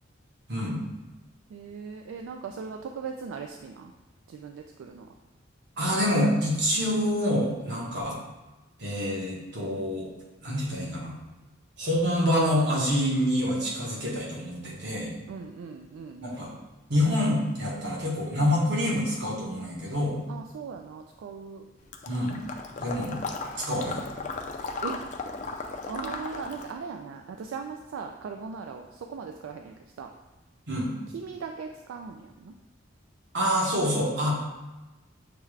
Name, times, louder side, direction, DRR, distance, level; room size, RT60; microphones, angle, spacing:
voice 1, 1.5-3.9 4.3-5.1 7.6-7.8 15.3-16.2 20.3-21.6 24.8-25.0 25.9-30.1 31.1-32.5, right 5 dB, 80° right, 4 dB, 0.3 m, -39 dB
voice 2, 5.8-8.2 8.8-10.1 10.4-11.1 11.8-15.1 16.2-16.5 16.9-20.2 22.1-22.4 22.8-23.2 23.6-24.0 30.7-30.9 33.3-34.4, equal, 55° right, -4 dB, 1.2 m, -26 dB
Water / Liquid, 21.9-26.8, left 4 dB, 35° left, 0.3 m, -36 dB
6.7 x 2.4 x 3.2 m, 1.1 s
head